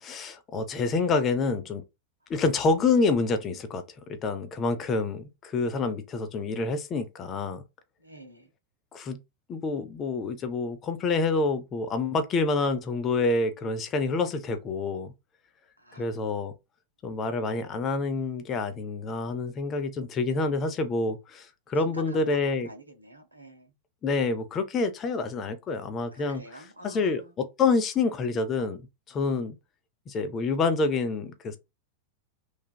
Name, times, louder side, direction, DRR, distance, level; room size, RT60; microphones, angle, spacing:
voice 1, 0.0-1.8 2.3-7.6 8.9-9.2 9.5-15.1 16.0-16.5 17.0-22.7 24.0-29.5 30.1-31.6, left 3 dB, 30° left, 0.5 m, -27 dB
voice 2, 8.0-8.5 15.8-16.2 17.0-17.3 21.9-23.7 26.1-27.3, right 1 dB, 85° right, 0.7 m, -47 dB
3.2 x 2.2 x 2.2 m
figure-of-eight pair, 90°, 0 cm